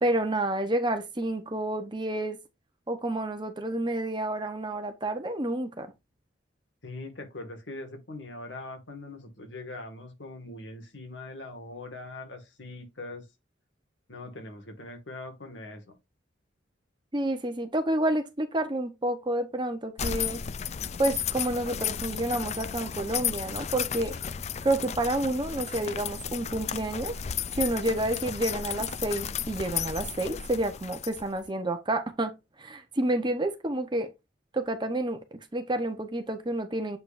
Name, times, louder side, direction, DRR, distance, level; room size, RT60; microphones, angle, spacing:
voice 1, 0.0-2.4 2.9-5.9 17.1-20.4 21.0-24.1 24.6-27.2 27.5-32.3 32.6-34.1 34.5-35.2 35.5-37.0, right 1 dB, 25° right, 0.9 m, -29 dB
voice 2, 6.8-13.3 14.1-16.0, left 2 dB, 75° left, 1.9 m, -42 dB
sound 1, 20.0-31.5, left 8 dB, 35° left, 0.4 m, -34 dB
7.9 x 5.2 x 2.6 m
head